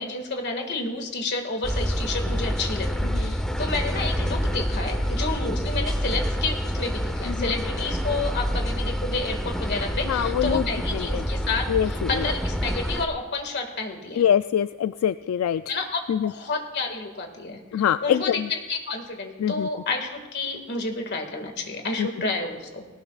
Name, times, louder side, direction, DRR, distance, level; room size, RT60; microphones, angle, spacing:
voice 1, 0.0-14.2 15.7-17.6 18.0-22.9, left 3 dB, 55° left, 4 dB, 1.9 m, -30 dB
sound 1, 1.6-13.1, equal, 5° left, 0.8 m, -27 dB
voice 2, 10.1-10.6 10.9-11.3 11.7-12.3 14.2-15.6 16.1-16.3 17.7-18.5 19.4-19.7 22.0-22.1, left 9 dB, 80° left, 13 dB, 0.3 m, -24 dB
19.0 x 17.5 x 2.4 m, 1.3 s
head